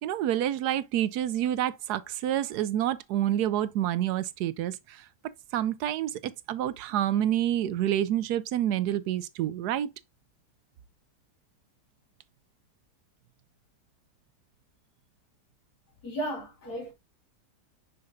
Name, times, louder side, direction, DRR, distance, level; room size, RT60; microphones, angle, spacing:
voice 1, 0.0-5.0 5.5-9.9, right 11 dB, 75° right, 1.1 m, -28 dB
voice 2, 16.0-16.9, right 1 dB, 70° left, 3.1 m, -34 dB
6.4 x 5.9 x 2.6 m
omnidirectional pair, 1.8 m